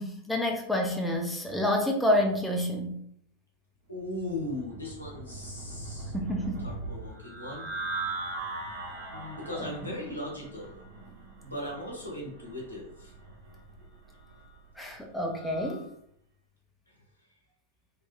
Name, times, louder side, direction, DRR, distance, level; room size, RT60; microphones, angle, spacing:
voice 1, 0.0-3.0 6.1-6.7 9.6-9.9 14.8-15.9, left 1 dB, 5° left, 2 dB, 0.4 m, -29 dB
voice 2, 3.9-6.1 6.6-7.7 9.1-10.8 11.4-13.1, left 1 dB, 80° left, -2 dB, 0.8 m, -38 dB
sound 1, 4.0-15.9, right 3 dB, 55° right, 0.8 m, -41 dB
2.7 x 2.2 x 2.3 m, 0.70 s
figure-of-eight pair, 90°, 0 cm